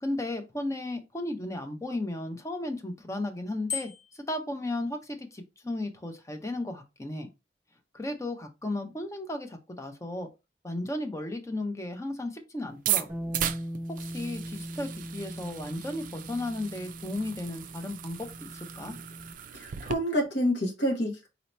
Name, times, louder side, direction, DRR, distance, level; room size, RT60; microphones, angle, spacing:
voice 1, 0.0-7.3 7.9-10.3 10.6-13.1 13.9-18.9, left 1 dB, 15° left, 0.7 m, -35 dB
Bicycle bell, 3.7-4.3, left 6 dB, 40° left, 1.9 m, -35 dB
sound 1, 12.7-19.9, right 11 dB, 50° right, 0.3 m, -36 dB
Bass guitar, 13.1-19.3, equal, 15° right, 1.0 m, -40 dB
voice 2, 19.5-21.3, equal, 70° left, 1.4 m, -28 dB
4.0 x 2.8 x 3.2 m
head